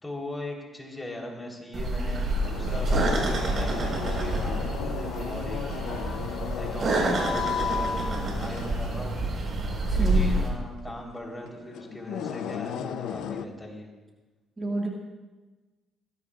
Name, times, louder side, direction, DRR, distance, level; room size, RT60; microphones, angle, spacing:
voice 1, 0.0-6.2 6.6-9.2 10.0-13.9, left 1 dB, 15° left, 0 dB, 3.9 m, -39 dB
sound 1, 1.7-10.5, right 2 dB, 55° right, 4.7 m, -28 dB
sound 2, 2.4-13.4, left 8 dB, 85° left, 0.7 m, -35 dB
voice 2, 6.9-7.2 9.9-10.4 14.6-14.9, equal, 25° right, -2 dB, 2.1 m, -29 dB
20.0 x 16.5 x 2.5 m, 1.2 s
cardioid pair, 90°, 0 cm